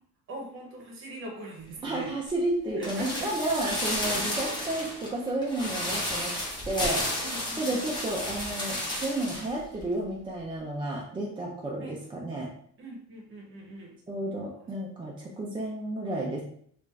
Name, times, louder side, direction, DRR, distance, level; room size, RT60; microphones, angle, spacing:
voice 1, 0.3-2.1 2.7-3.3 3.9-4.2 4.4-4.5 7.2-7.8 11.8-12.0 12.8-13.9, right 2 dB, 35° right, 0 dB, 0.9 m, -41 dB
voice 2, 1.8-6.4 6.7-7.0 7.6-12.5 14.1-16.4, right 1 dB, 15° right, -3 dB, 0.4 m, -31 dB
sound 1, 2.8-9.5 9.8-9.9, left 1 dB, 15° left, 0.9 m, -32 dB
3.3 x 2.5 x 3.2 m, 0.63 s
cardioid pair, 160°, 34 cm